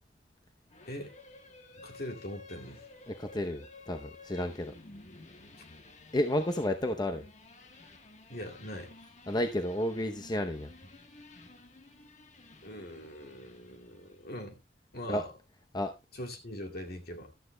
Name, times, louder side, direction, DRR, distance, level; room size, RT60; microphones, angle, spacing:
sound 1, 0.7-14.3, left 3 dB, 40° left, 1.3 m, -54 dB
voice 1, 1.8-2.8 8.3-8.9 12.6-14.6 14.9-15.3 16.1-17.3, left 1 dB, 60° left, 2.3 m, -42 dB
voice 2, 3.1-4.7 6.1-7.2 9.3-10.7 15.1-15.2 15.7-15.9, left 1 dB, 25° left, 0.7 m, -31 dB
14.5 x 12.0 x 2.2 m
head